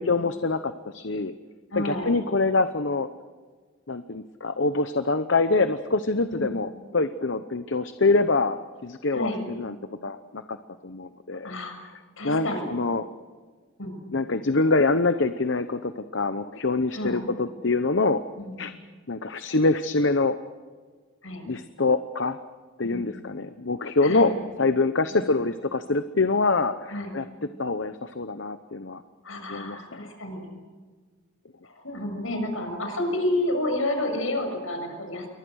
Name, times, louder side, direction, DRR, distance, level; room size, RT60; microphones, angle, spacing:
voice 1, 0.0-1.3 1.8-3.1 3.9-9.7 10.0-10.6 10.8-11.5 12.2-13.0 14.1-18.2 18.6-18.7 19.1-20.4 21.5-22.4 22.8-27.2 27.6-29.0 29.5-30.0, left 3 dB, 60° left, 10 dB, 0.9 m, -25 dB
voice 2, 1.7-2.2 6.3-6.6 9.1-9.5 11.4-11.7 12.2-12.7 13.8-14.2 16.9-17.3 18.4-18.8 21.2-21.5 22.8-23.1 24.0-24.3 25.1-25.3 26.9-27.2 29.2-30.5 31.6-35.3, left 1 dB, 75° left, 5 dB, 6.9 m, -30 dB
28.5 x 23.5 x 6.4 m, 1.5 s
head